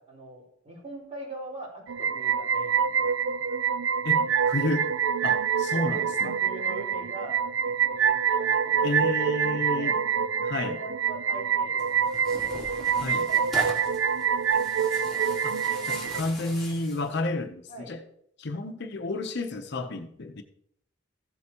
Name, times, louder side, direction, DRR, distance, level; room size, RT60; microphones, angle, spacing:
voice 1, 0.0-3.4 4.2-4.7 5.7-9.9 10.5-12.6 13.0-14.3 14.6-14.9 15.7-17.2 17.7-18.0, right 2 dB, 35° right, 4.9 m, -44 dB
sound 1, 1.9-16.2, right 7 dB, 70° right, 0.4 m, -26 dB
voice 2, 4.0-4.9 5.2-6.4 8.8-9.9 10.4-10.8 13.0-13.2 15.4-15.6 15.8-18.0 18.4-20.4, left 2 dB, 60° left, 0.8 m, -31 dB
Tearing, 11.8-17.1, left 1 dB, ahead, 2.9 m, -40 dB
15.0 x 7.7 x 2.9 m
head